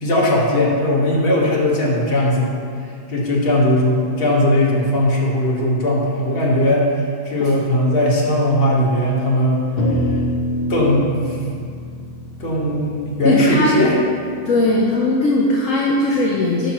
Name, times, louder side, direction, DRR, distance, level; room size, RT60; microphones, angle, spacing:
voice 1, 0.0-2.5 3.1-6.9 7.2-9.6 10.7-11.4 12.4-14.0, left 1 dB, 35° left, -4 dB, 1.4 m, -18 dB
sound 1, 9.8-14.3, left 1 dB, 85° left, 0.4 m, -25 dB
voice 2, 13.2-13.8 14.4-16.7, left 2 dB, 55° left, -2 dB, 1.0 m, -18 dB
11.0 x 5.8 x 3.0 m, 2.3 s
omnidirectional pair, 1.9 m